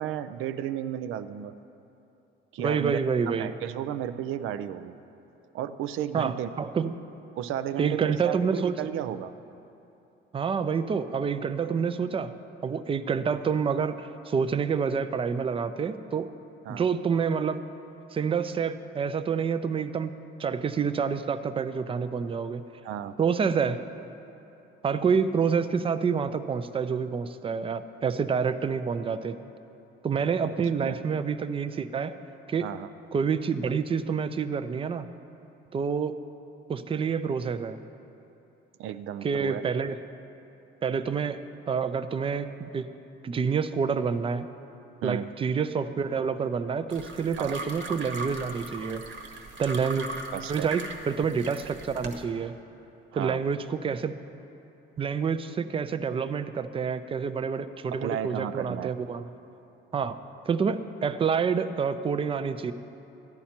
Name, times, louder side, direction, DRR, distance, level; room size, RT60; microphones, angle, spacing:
voice 1, 0.0-1.6 2.5-3.0 3.3-5.0 5.5-6.5 7.4-9.3 16.7-16.8 22.8-23.1 30.8-31.0 32.6-32.9 38.8-39.6 45.0-45.3 47.4-47.6 50.3-50.7 53.1-53.4 57.9-58.9, right 10 dB, 85° right, 12 dB, 0.5 m, -33 dB
voice 2, 2.6-3.5 6.1-6.9 7.8-8.8 10.3-12.3 12.6-16.3 16.7-17.6 18.1-20.1 20.4-22.7 23.2-23.8 24.8-29.4 30.0-32.1 32.5-32.7 33.1-35.1 35.7-36.2 36.7-37.8 39.2-40.0 40.8-42.9 43.2-44.5 45.0-49.0 49.6-50.1 50.5-52.5 53.1-54.2 55.0-59.3 59.9-60.2 60.5-62.7, right 6 dB, 25° right, 12 dB, 0.4 m, -28 dB
sound 1, 46.9-52.2, right 3 dB, 65° right, 1.3 m, -39 dB
14.0 x 10.5 x 4.4 m, 2.9 s
cardioid pair, 125°, 20 cm